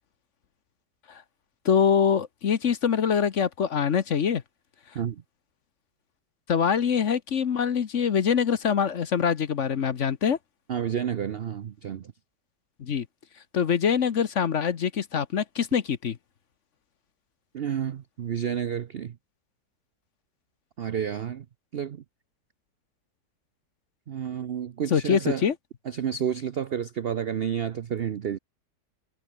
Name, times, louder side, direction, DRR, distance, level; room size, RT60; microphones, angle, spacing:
voice 1, 1.6-4.4 6.5-10.4 12.8-13.1 13.5-16.2 24.9-25.5, left 7 dB, 50° left, 1.2 m, -24 dB
voice 2, 10.7-12.1 17.5-19.2 20.8-21.4 21.7-22.0 24.1-25.5 25.9-28.4, right 8 dB, 65° right, 0.6 m, -30 dB
omnidirectional pair, 1.8 m